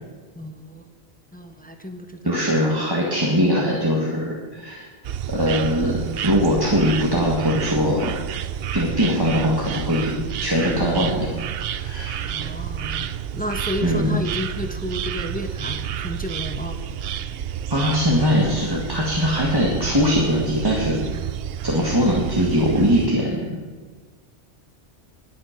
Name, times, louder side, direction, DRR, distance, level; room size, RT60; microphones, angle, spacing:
voice 1, 0.3-0.9 1.3-2.4 12.2-13.1 13.3-16.8, equal, 10° left, 5 dB, 1.0 m, -32 dB
voice 2, 2.3-4.9 5.3-8.1 8.7-11.3 11.7-12.5 13.8-14.1 17.7-21.1 21.6-23.6, equal, 20° right, -3 dB, 1.8 m, -21 dB
sound 1, 5.0-23.1, right 9 dB, 70° right, 0.8 m, -30 dB
21.0 x 7.8 x 5.9 m, 1.5 s
omnidirectional pair, 1.1 m